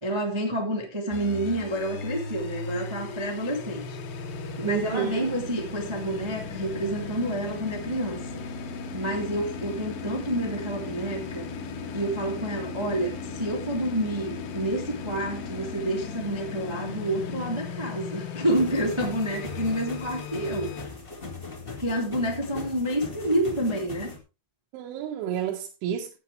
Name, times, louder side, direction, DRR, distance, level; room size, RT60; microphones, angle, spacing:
voice 1, 0.0-4.0 4.6-8.2 8.9-11.5 11.9-20.9 21.8-24.1, right 1 dB, 35° right, 0.4 m, -29 dB
sound 1, 1.1-20.8, left 4 dB, 75° left, 4.3 m, -37 dB
voice 2, 4.7-5.3 24.7-26.2, right 9 dB, 80° right, 3.7 m, -30 dB
sound 2, 18.5-24.2, left 3 dB, 45° left, 0.7 m, -39 dB
14.0 x 9.0 x 3.3 m
omnidirectional pair, 5.4 m